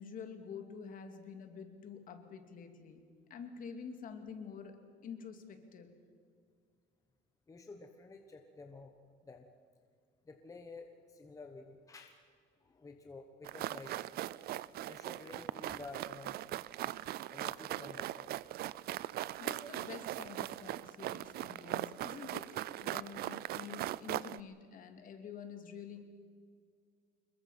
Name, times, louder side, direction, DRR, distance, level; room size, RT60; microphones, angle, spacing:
voice 1, 0.0-3.0 3.3-5.9 19.4-22.6 22.8-26.0, left 6 dB, 45° left, 6 dB, 2.5 m, -48 dB
voice 2, 7.5-8.9 9.2-9.5 10.2-12.2 12.6-14.0 14.8-16.4 17.3-18.3, left 3 dB, 15° left, 4 dB, 1.2 m, -51 dB
sound 1, 13.4-24.4, right 14 dB, 55° right, 0.5 m, -40 dB
26.5 x 22.0 x 5.7 m, 2.1 s
cardioid pair, 160°, 19 cm